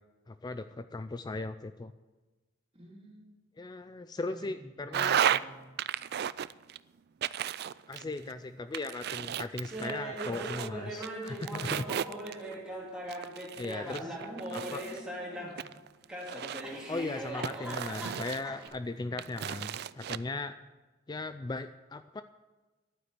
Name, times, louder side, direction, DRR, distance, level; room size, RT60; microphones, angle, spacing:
voice 1, 0.3-1.9 3.6-5.2 7.9-11.8 13.6-14.0 14.5-14.8 16.9-20.6 21.1-22.2, left 3 dB, 20° left, 11 dB, 0.3 m, -38 dB
voice 2, 2.7-3.4 4.3-5.6 8.0-8.5 11.5-11.9 13.1-13.3 13.8-15.7, equal, 30° right, -2 dB, 3.3 m, -48 dB
sound 1, 4.9-5.4 5.8-6.8 7.2-8.3 8.7-10.7 11.0-12.5 13.1-15.0 15.6-16.8 17.4-18.7 19.2-20.2, right 9 dB, 50° right, 0.3 m, -33 dB
Laughter, 9.7-15.7 16.1-18.7, right 1 dB, 5° right, 2.5 m, -40 dB
11.5 x 9.4 x 8.1 m, 1.2 s
head